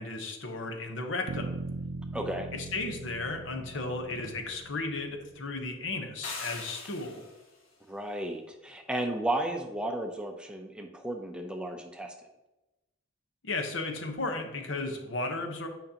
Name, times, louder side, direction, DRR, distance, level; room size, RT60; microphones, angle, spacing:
voice 1, 0.0-1.6 2.5-7.2 13.4-15.7, left 2 dB, 65° left, 4 dB, 1.0 m, -34 dB
sound 1, 1.3-5.4, right 3 dB, 75° right, 0.4 m, -40 dB
voice 2, 2.1-2.5 7.9-12.1, right 1 dB, 5° right, 3 dB, 0.5 m, -33 dB
sound 2, 6.2-7.5, left 3 dB, 85° left, 1.5 m, -41 dB
9.2 x 5.2 x 2.9 m, 0.99 s
head